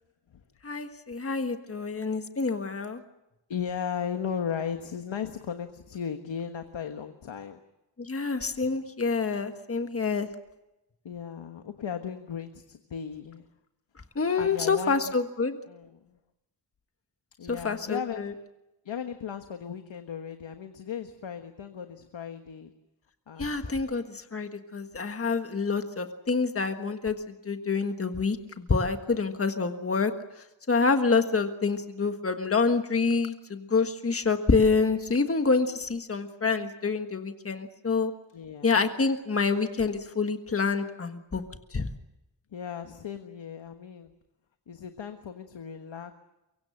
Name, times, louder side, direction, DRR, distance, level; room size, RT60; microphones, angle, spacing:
voice 1, 0.6-3.0 8.0-10.3 14.1-15.6 17.5-18.3 23.4-27.1 27.4-30.1 30.7-38.1 38.6-41.4 41.7-41.9, left 4 dB, 30° left, 7 dB, 1.5 m, -27 dB
voice 2, 3.5-7.6 11.0-13.4 14.4-15.1 15.7-15.9 17.4-18.3 18.8-22.7 23.3-23.8 38.3-38.7 42.5-44.1 44.7-46.1, left 7 dB, 80° left, 7 dB, 1.5 m, -36 dB
24.0 x 23.5 x 7.7 m, 0.93 s
wide cardioid pair, 155°, 45 cm